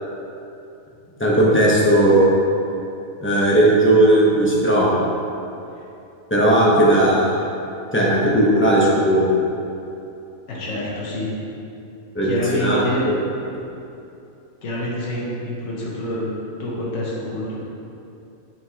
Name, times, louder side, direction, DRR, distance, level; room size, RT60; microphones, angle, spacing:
voice 1, 1.2-2.3 3.2-5.0 6.3-7.2 7.9-9.3 12.1-12.8 13.1-13.2, right 1 dB, 10° left, -6 dB, 0.8 m, -16 dB
voice 2, 10.5-11.3 12.2-13.1 14.6-16.3 16.6-17.6, left 1 dB, 65° left, -6 dB, 1.4 m, -27 dB
7.5 x 4.6 x 2.9 m, 2.7 s
omnidirectional pair, 1.5 m